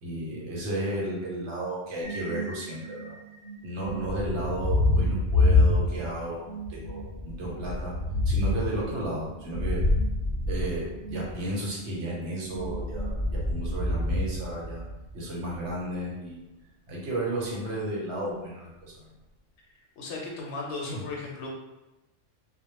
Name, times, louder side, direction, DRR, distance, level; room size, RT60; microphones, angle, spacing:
voice 1, 0.0-3.1 3.6-7.9 8.2-9.8 10.5-14.8 15.1-16.4 16.9-19.1 20.9-21.0, right 1 dB, 70° right, -4 dB, 1.0 m, -33 dB
sound 1, 2.0-13.7, right 6 dB, 85° right, 1.1 m, -43 dB
Thunder, 3.8-6.3 6.6-11.4 12.5-15.1, left 2 dB, 45° left, 0.4 m, -27 dB
voice 2, 20.0-21.5, left 3 dB, 70° left, -1 dB, 0.8 m, -36 dB
2.2 x 2.1 x 2.9 m, 0.99 s
omnidirectional pair, 1.3 m